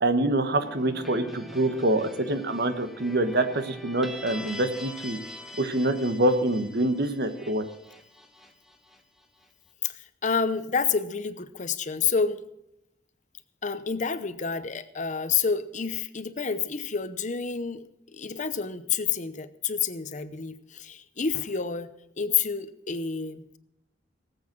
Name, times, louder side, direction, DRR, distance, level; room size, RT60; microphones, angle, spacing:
voice 1, 0.0-5.2 5.6-7.6, right 1 dB, 65° right, 9 dB, 1.3 m, -25 dB
sound 1, 0.6-9.4, left 1 dB, ahead, 1.4 m, -43 dB
voice 2, 9.8-12.4 13.6-17.8 18.1-21.9 22.2-23.6, left 6 dB, 45° left, 13 dB, 0.8 m, -29 dB
18.5 x 8.1 x 6.2 m, 0.83 s
head